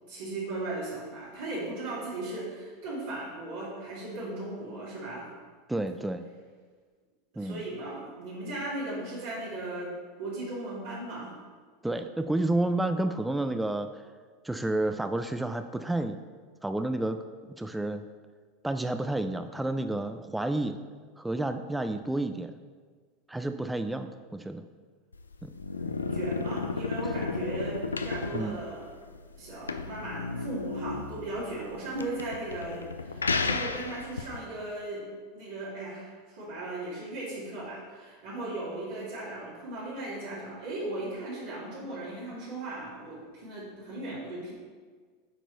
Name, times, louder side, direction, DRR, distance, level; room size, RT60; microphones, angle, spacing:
voice 1, 0.1-5.3 7.3-11.3 25.7-28.9 29.3-35.1 35.3-44.5, right 2 dB, 70° right, -8 dB, 2.1 m, -37 dB
voice 2, 5.7-6.2 7.4-7.6 11.8-13.9 14.4-16.2 16.6-17.2 17.6-18.0 18.6-20.8 21.2-22.5 23.3-24.6 25.4-25.5 28.3-28.6, right 2 dB, 5° right, 8 dB, 0.4 m, -30 dB
sound 1, 25.1-34.4, left 4 dB, 90° left, 0.3 m, -33 dB
7.9 x 4.6 x 3.9 m, 1.5 s
hypercardioid pair, 85°, 0 cm